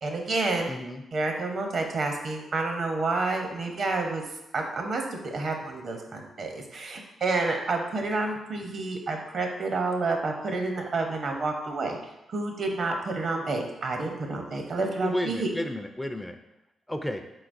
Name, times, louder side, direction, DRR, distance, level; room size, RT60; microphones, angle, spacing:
voice 1, 0.0-0.7 1.1-4.2 4.5-12.0 12.3-15.5, right 3 dB, 60° right, 3 dB, 0.8 m, -29 dB
voice 2, 0.7-1.0 15.0-16.4 16.9-17.2, left 1 dB, 10° left, 7 dB, 0.4 m, -31 dB
4.3 x 3.9 x 2.6 m, 0.91 s
hypercardioid pair, 45°, 0 cm